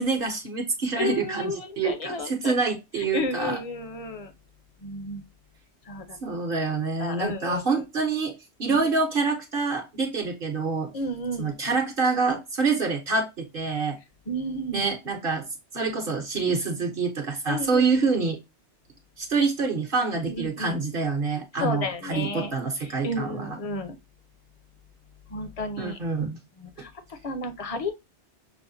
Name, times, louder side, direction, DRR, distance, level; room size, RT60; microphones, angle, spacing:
voice 1, 0.0-3.6 6.2-8.3 8.6-10.9 11.4-14.0 14.7-15.5 15.7-18.4 19.2-23.6 25.8-26.4, right 4 dB, 55° right, 1.0 m, -26 dB
voice 2, 1.0-2.6 3.0-4.3 4.8-5.2 5.9-6.2 7.0-7.6 8.7-8.8 10.9-11.5 14.3-14.9 17.5-17.9 20.3-20.8 21.6-22.5 22.8-24.0 25.3-26.0 26.6-27.9, left 1 dB, 40° left, 0.7 m, -32 dB
6.2 x 2.1 x 2.6 m
omnidirectional pair, 1.2 m